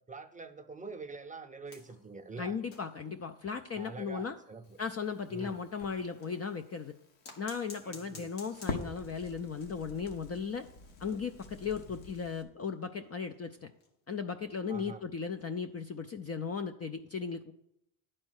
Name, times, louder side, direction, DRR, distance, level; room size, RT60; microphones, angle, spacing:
voice 1, 0.0-2.6 3.7-4.6 5.3-5.6 7.8-8.3 11.8-12.1 14.7-15.0, right 4 dB, 15° right, 5 dB, 0.6 m, -45 dB
sound 1, 1.7-6.5 7.2-9.1 9.4-9.6 9.9-10.0 10.3-10.4 11.0-14.1 14.5-14.8 15.9-16.0, left 3 dB, 85° left, 1.8 m, -56 dB
voice 2, 2.4-4.3 4.8-6.9 7.4-10.7 11.0-13.7 14.1-17.5, left 6 dB, 35° left, 7 dB, 0.4 m, -36 dB
Crackle, 4.6-12.4, left 4 dB, 65° left, 1.4 m, -46 dB
10.5 x 4.4 x 6.3 m, 0.76 s
cardioid pair, 100°, 49 cm